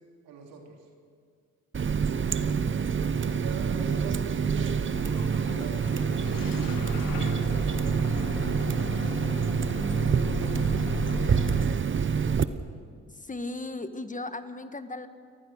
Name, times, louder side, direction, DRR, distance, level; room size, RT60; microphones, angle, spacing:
voice 1, 0.2-0.8 3.0-9.1 9.7-10.9 11.6-12.6, right 4 dB, 80° right, 1 dB, 3.6 m, -43 dB
Water tap faucet, 1.7-12.4, right 6 dB, 35° right, 1.0 m, -27 dB
voice 2, 2.2-2.8 9.8-10.1 13.1-15.1, left 2 dB, 20° left, 9 dB, 1.5 m, -38 dB
Bus / Engine starting, 4.9-11.7, left 10 dB, 75° left, 1.4 m, -38 dB
29.5 x 14.5 x 6.5 m, 2.1 s
supercardioid pair, 60°, 34 cm